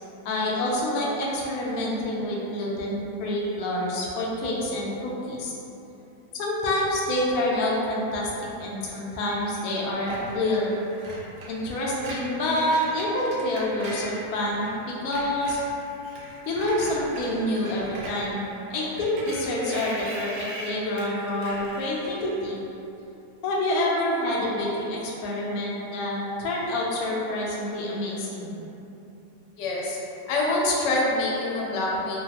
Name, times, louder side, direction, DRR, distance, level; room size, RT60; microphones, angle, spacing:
voice 1, 0.2-5.5 6.3-10.7 11.5-15.6 16.5-18.4 18.7-22.6 23.4-28.5, left 1 dB, 70° left, -4 dB, 0.9 m, -27 dB
Screech, 10.1-14.7 15.0-22.5, right 1 dB, 75° right, 1.1 m, -41 dB
voice 2, 29.6-30.0 30.3-32.2, left 2 dB, 90° left, -3 dB, 1.3 m, -25 dB
3.2 x 2.2 x 2.8 m, 2.9 s
omnidirectional pair, 1.9 m